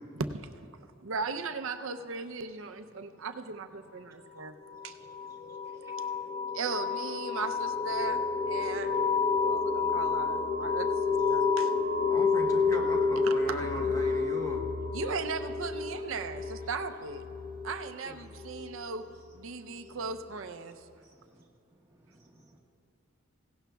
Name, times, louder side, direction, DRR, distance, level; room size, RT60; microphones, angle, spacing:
voice 1, 1.0-4.6 4.8-5.0 6.5-9.0 9.4-11.7 13.2-13.6 14.9-17.2 17.6-19.0 19.3-20.8, right 4 dB, 75° right, 7 dB, 0.6 m, -37 dB
sound 1, 4.7-19.1, left 4 dB, 35° left, 0.5 m, -30 dB
Wind instrument woodwind instrument, 8.3-16.1, equal, 65° left, 2.6 m, -48 dB
voice 2, 8.5-9.4 12.0-12.1 17.3-17.5 19.3-19.4 19.8-20.0 21.1-21.4 22.1-22.6, right 1 dB, 15° right, -3 dB, 1.4 m, -61 dB
voice 3, 12.1-14.6 18.0-18.2, equal, 15° left, 1 dB, 1.1 m, -39 dB
17.5 x 16.5 x 2.3 m, 2.4 s
head